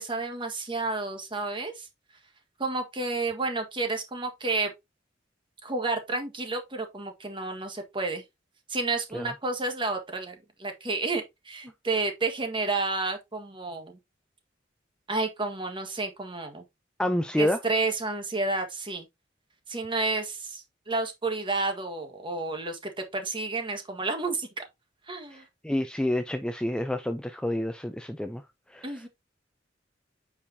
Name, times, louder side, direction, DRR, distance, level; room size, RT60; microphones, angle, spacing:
voice 1, 0.0-1.9 2.6-4.7 5.6-8.2 8.7-14.0 15.1-16.6 17.4-19.1 19.7-24.6 25.1-25.4 28.8-29.1, right 3 dB, 25° right, 1.6 m, -31 dB
voice 2, 17.0-17.6 25.6-28.4 28.7-28.9, left 1 dB, 5° left, 0.5 m, -28 dB
8.6 x 4.9 x 2.8 m
head